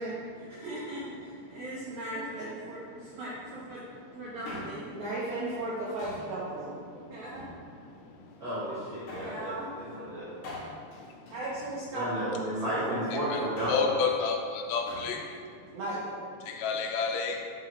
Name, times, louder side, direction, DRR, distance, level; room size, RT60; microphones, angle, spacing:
voice 1, 0.0-3.8 4.1-6.8 7.1-7.4 9.1-9.7 11.3-13.4 15.7-16.0, right 1 dB, 70° right, -8 dB, 1.9 m, -37 dB
Male speech man speaking, 4.2-5.0 6.0-6.4 7.2-8.0 9.1-9.4 10.4-12.1 13.3-14.0 14.9-15.2 15.5-15.6, left 1 dB, 65° left, 2.1 m, -43 dB
voice 2, 8.4-10.3 11.9-14.0, right 1 dB, 90° right, -11 dB, 1.0 m, -33 dB
voice 3, 13.7-15.3 16.5-17.4, left 5 dB, 90° left, 1 dB, 1.6 m, -29 dB
10.0 x 3.8 x 3.1 m, 2.2 s
omnidirectional pair, 4.2 m